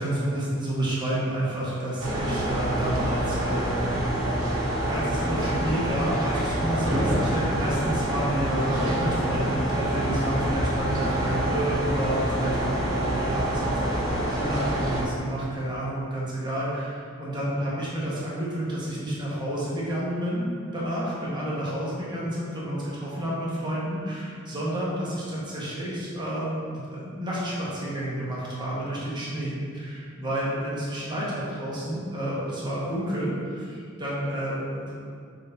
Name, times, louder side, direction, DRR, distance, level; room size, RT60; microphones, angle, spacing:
voice 1, 0.0-4.1 4.9-34.9, right 1 dB, 20° right, -7 dB, 1.3 m, -30 dB
sound 1, 2.0-15.0, right 1 dB, 80° right, 1.2 m, -26 dB
6.6 x 3.8 x 4.0 m, 2.2 s
head